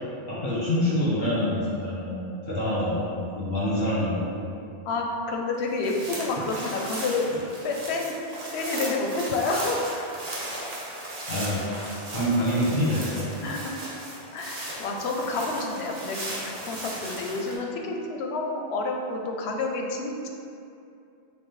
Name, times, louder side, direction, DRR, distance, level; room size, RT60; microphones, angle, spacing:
voice 1, 0.3-4.4 11.3-11.6 12.1-13.3, left 1 dB, 70° left, -9 dB, 1.5 m, -26 dB
voice 2, 4.8-7.3 7.6-8.1 8.5-10.0 13.4-13.7 14.3-20.3, left 3 dB, 90° left, 1 dB, 0.8 m, -29 dB
sound 1, 5.6-17.6, right 1 dB, 45° right, 0.8 m, -36 dB
5.9 x 2.1 x 3.1 m, 2.5 s
omnidirectional pair, 1.0 m